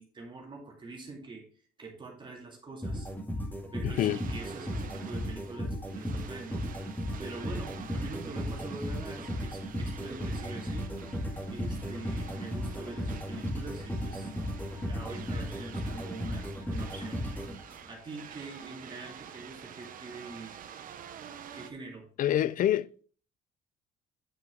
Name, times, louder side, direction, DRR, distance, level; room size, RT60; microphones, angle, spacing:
voice 1, 0.0-1.4 1.8-3.1 3.7-10.9 11.5-14.3 14.8-17.2 17.9-20.5 21.5-22.1, right 3 dB, 30° right, 2.3 m, -44 dB
sound 1, 2.8-18.1, equal, 10° left, 2.3 m, -35 dB
voice 2, 3.8-4.2 22.2-23.0, left 12 dB, 55° left, 0.4 m, -27 dB
sound 2, 3.9-21.7, right 9 dB, 55° right, 0.9 m, -49 dB
9.0 x 5.9 x 3.7 m
cardioid pair, 110°, 17 cm